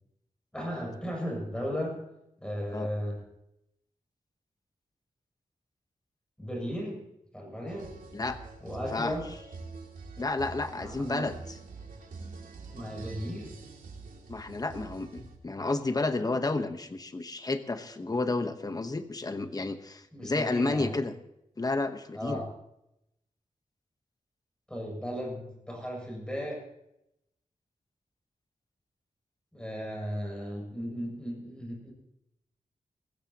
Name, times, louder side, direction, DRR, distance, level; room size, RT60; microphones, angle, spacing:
voice 1, 0.5-2.0 2.4-3.2 6.4-7.0 7.3-7.9 8.6-9.3 10.7-11.3 12.7-13.6 20.1-21.0 22.1-22.5 24.7-26.6 29.5-31.9, equal, 5° left, -2 dB, 6.9 m, -35 dB
sound 1, 7.7-15.4, right 4 dB, 80° right, 2.5 m, -45 dB
voice 2, 10.2-11.3 14.3-21.1 21.6-22.4, left 3 dB, 25° left, 8 dB, 1.1 m, -31 dB
20.5 x 15.0 x 2.9 m, 0.83 s
wide cardioid pair, 150°, 14 cm